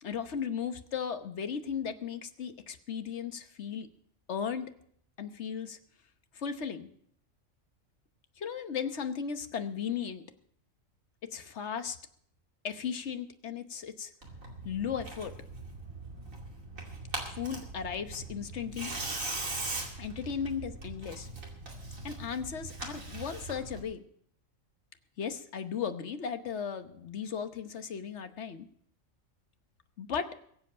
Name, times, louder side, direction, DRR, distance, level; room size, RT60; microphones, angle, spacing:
voice 1, 0.0-3.9 4.3-4.7 5.2-5.8 6.3-6.9 8.4-10.2 11.3-12.0 12.6-14.1 14.6-15.3 17.3-18.9 20.0-21.3 22.0-24.0 25.2-28.7 30.0-30.3, left 7 dB, 60° left, 9 dB, 1.3 m, -36 dB
Tearing, 14.2-23.8, right 2 dB, 80° right, 2.9 m, -40 dB
22.0 x 7.8 x 5.6 m, 0.66 s
omnidirectional pair, 1.4 m